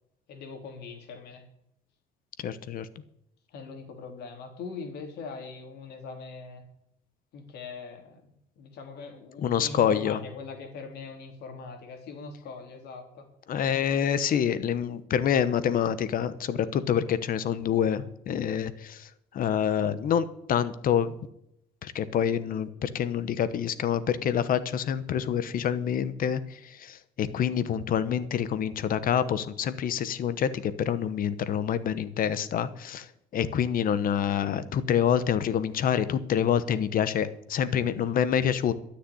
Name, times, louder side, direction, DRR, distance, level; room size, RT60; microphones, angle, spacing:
voice 1, 0.3-1.4 3.5-6.6 7.3-13.3, left 4 dB, 75° left, 4 dB, 3.3 m, -41 dB
voice 2, 2.4-2.9 9.4-10.2 13.5-19.1 19.3-21.1 21.8-26.4 26.8-33.1 33.3-38.7, left 8 dB, 55° left, 14 dB, 1.1 m, -27 dB
12.5 x 6.8 x 9.9 m, 0.77 s
cardioid pair, 110°, 17 cm